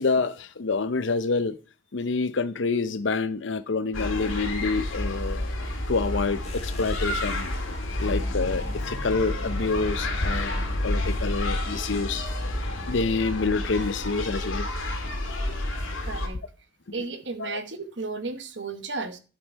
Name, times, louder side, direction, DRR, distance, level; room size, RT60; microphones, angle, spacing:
voice 1, 0.0-1.6 1.9-5.6 5.9-7.5 7.8-12.2 12.9-14.7 17.0-17.1 17.4-17.6, left 4 dB, 65° left, 0.6 m, -27 dB
sound 1, 3.9-16.3, left 1 dB, 80° left, 1.8 m, -30 dB
sound 2, 6.4-13.3, left 1 dB, 30° left, 1.7 m, -45 dB
voice 2, 16.0-16.4 16.9-19.2, right 3 dB, 60° right, 1.2 m, -33 dB
12.0 x 5.4 x 4.5 m
head